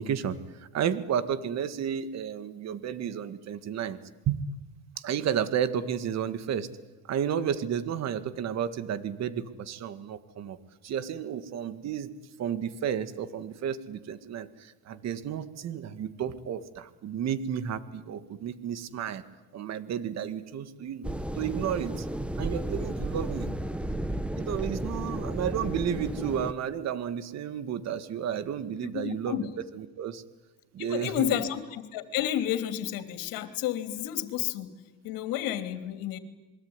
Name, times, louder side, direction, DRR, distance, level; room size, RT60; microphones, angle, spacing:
voice 1, 0.0-4.0 4.3-4.4 5.0-6.7 7.1-10.6 10.8-12.1 12.4-19.2 19.5-21.1 21.3-22.1 22.4-23.5 24.4-29.4 29.7-30.2 30.7-31.4, right 8 dB, 50° right, 13 dB, 1.9 m, -32 dB
sound 1, 21.0-26.5, right 1 dB, 5° right, 1.2 m, -33 dB
voice 2, 28.9-29.4 30.8-34.7 35.0-36.2, left 12 dB, 75° left, 10 dB, 3.1 m, -31 dB
27.5 x 22.0 x 9.7 m, 1.1 s
cardioid pair, 115°, 34 cm